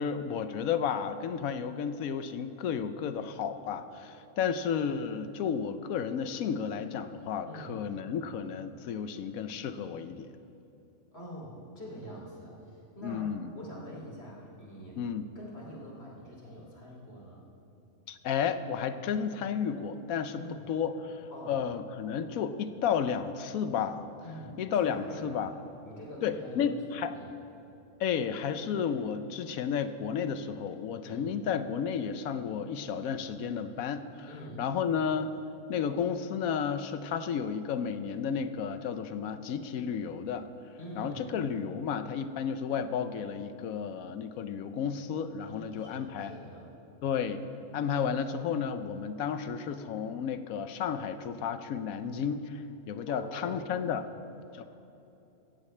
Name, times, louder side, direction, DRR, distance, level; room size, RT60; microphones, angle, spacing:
voice 1, 0.0-10.3 13.0-13.5 15.0-15.3 18.1-24.1 24.6-25.5 26.2-27.1 28.0-34.3 34.6-35.4 35.7-40.5 41.0-46.3 47.0-47.4 47.7-54.1 54.5-54.6, left 7 dB, 80° left, 11 dB, 1.1 m, -32 dB
voice 2, 7.4-7.8 11.1-13.3 13.5-15.0 15.3-17.4 20.3-20.7 21.3-21.6 24.2-25.5 25.8-27.3 31.0-31.3 34.3-34.6 40.8-41.3 45.5-46.7 51.9-52.1 53.1-53.7, equal, 45° left, -3 dB, 3.1 m, -45 dB
16.0 x 15.5 x 3.3 m, 2.9 s
omnidirectional pair, 1.5 m